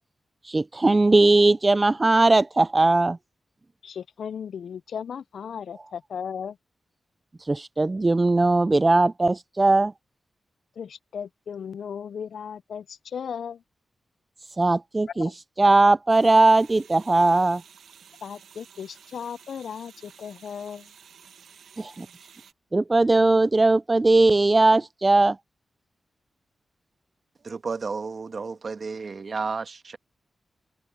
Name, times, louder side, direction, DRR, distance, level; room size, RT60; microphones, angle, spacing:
voice 1, 0.4-3.2 7.4-9.9 14.6-15.3 15.6-17.6 21.8-22.1 22.7-25.4, right 2 dB, 30° right, 0.3 m, -19 dB
voice 2, 3.8-6.6 10.8-13.6 15.2-15.3 18.2-20.9, left 7 dB, 80° left, 0.4 m, -36 dB
sound 1, 16.1-22.5, right 7 dB, 90° right, 1.4 m, -52 dB
voice 3, 27.4-30.0, right 4 dB, 55° right, 1.6 m, -32 dB
cardioid pair, 55°, 0 cm